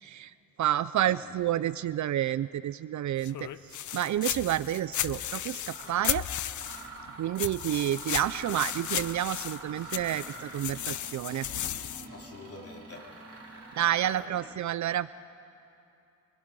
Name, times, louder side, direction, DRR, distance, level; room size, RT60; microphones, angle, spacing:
voice 1, 0.0-6.2 7.2-11.5 13.8-15.1, right 12 dB, 60° right, 16 dB, 0.5 m, -30 dB
sound 1, 3.2-7.0 7.4-12.1, left 11 dB, 65° left, 0.7 m, -35 dB
Mechanisms, 5.1-5.2 5.7-6.1 6.5-14.3, right 3 dB, 45° right, 3.7 m, -46 dB
voice 2, 11.6-13.8 14.1-14.5, left 3 dB, 45° left, 0 dB, 3.6 m, -49 dB
29.5 x 23.0 x 5.4 m, 2.8 s
cardioid pair, 100°, 32 cm